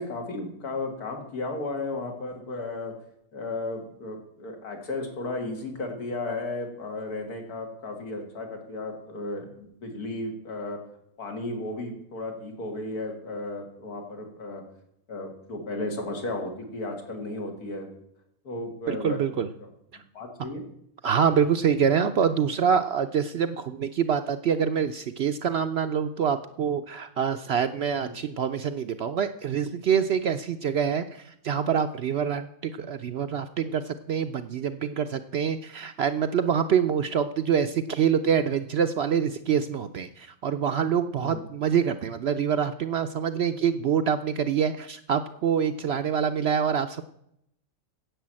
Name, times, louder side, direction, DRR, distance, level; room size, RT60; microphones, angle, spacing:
voice 1, 0.0-2.9 3.3-10.8 11.2-14.6 15.1-17.9 18.4-19.7 20.1-20.6 28.0-28.1 41.2-41.4, left 2 dB, 85° left, 3 dB, 2.5 m, -34 dB
voice 2, 18.9-19.5 21.0-47.0, right 7 dB, 65° right, 9 dB, 0.6 m, -26 dB
10.0 x 8.1 x 7.5 m, 0.77 s
omnidirectional pair, 1.6 m